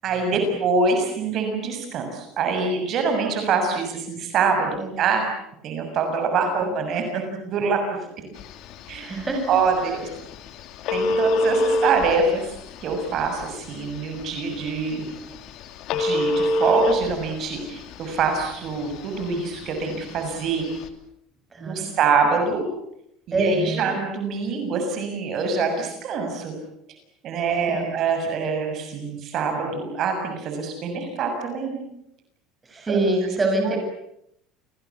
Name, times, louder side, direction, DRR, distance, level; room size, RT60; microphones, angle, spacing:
voice 1, 0.0-5.2 5.6-7.8 8.9-9.1 9.5-10.1 10.9-12.4 12.8-15.1 15.9-20.6 21.6-22.6 23.3-26.5 27.2-31.8 32.9-33.0 33.6-33.8, right 4 dB, 45° right, 5 dB, 6.6 m, -25 dB
Telephone, 8.4-20.9, left 1 dB, 55° left, 3.2 m, -28 dB
voice 2, 9.0-9.6 21.5-21.9 23.3-23.9 27.7-28.0 32.7-33.8, right 2 dB, 20° right, 3 dB, 7.9 m, -25 dB
30.0 x 21.0 x 8.5 m, 0.77 s
cardioid pair, 135°, 0 cm